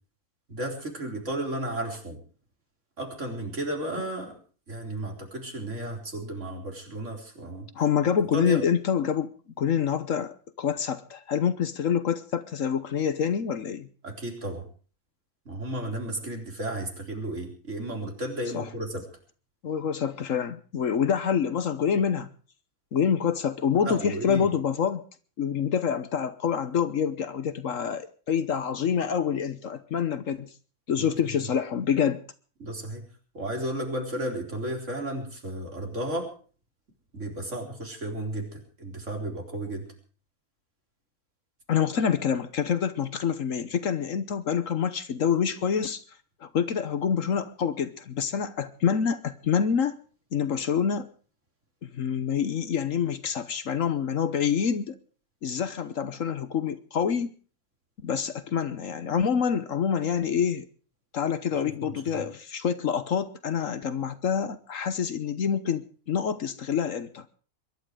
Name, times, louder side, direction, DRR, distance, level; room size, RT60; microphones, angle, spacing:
voice 1, 0.5-2.2 3.0-4.4 4.7-7.7 8.3-8.6 14.0-14.7 15.5-19.0 23.8-24.5 31.0-31.2 32.6-33.1 33.3-36.3 37.1-39.9 61.6-61.9, right 1 dB, 50° right, 4.4 m, -33 dB
voice 2, 7.7-13.9 18.5-18.7 19.6-22.3 22.9-25.0 25.4-30.5 30.9-32.2 41.7-46.0 46.4-50.0 50.3-51.1 51.8-55.0 55.4-57.3 58.0-60.7 61.1-67.3, left 7 dB, 60° left, 1.3 m, -27 dB
23.0 x 11.5 x 4.9 m
omnidirectional pair, 1.6 m